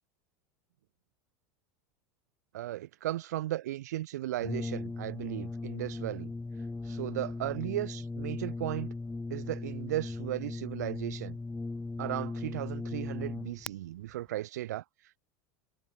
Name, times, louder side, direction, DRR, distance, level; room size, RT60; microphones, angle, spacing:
voice 1, 2.5-6.3 6.8-8.9 9.3-11.4 12.0-14.8, right 14 dB, 85° right, 2.5 m, -36 dB
Brass instrument, 4.4-13.7, left 3 dB, 10° left, 4.3 m, -38 dB
supercardioid pair, 120°, 9 cm